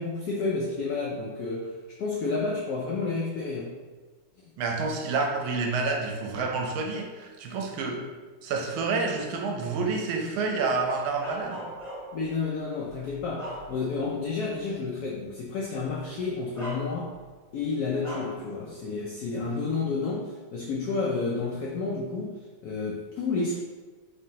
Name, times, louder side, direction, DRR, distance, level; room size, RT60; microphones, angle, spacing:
voice 1, 0.0-3.7 12.1-17.1 17.5-23.6, left 4 dB, 85° left, -2 dB, 0.8 m, -30 dB
voice 2, 4.6-8.0 8.4-11.6, right 4 dB, 85° right, 1 dB, 1.5 m, -28 dB
Bark, 11.2-12.3 12.9-14.1 14.5-14.7 15.8-16.0 16.5-17.3 18.0-18.4, equal, 20° left, 1.2 m, -39 dB
4.5 x 3.1 x 2.8 m, 1.3 s
omnidirectional pair, 2.2 m